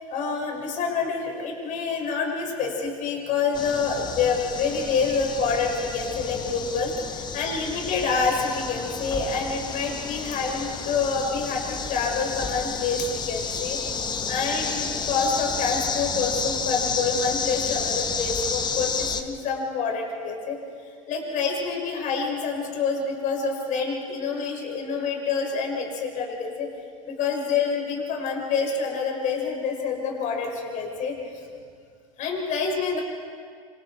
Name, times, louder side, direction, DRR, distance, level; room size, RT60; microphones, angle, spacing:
voice 1, 0.1-13.8 14.3-20.6 21.1-26.7 27.1-31.1 32.2-33.0, left 5 dB, 45° left, 1 dB, 6.5 m, -27 dB
sound 1, 3.5-19.2, left 5 dB, 25° left, 1.6 m, -31 dB
27.5 x 27.5 x 4.6 m, 2.2 s
hypercardioid pair, 90°, 18 cm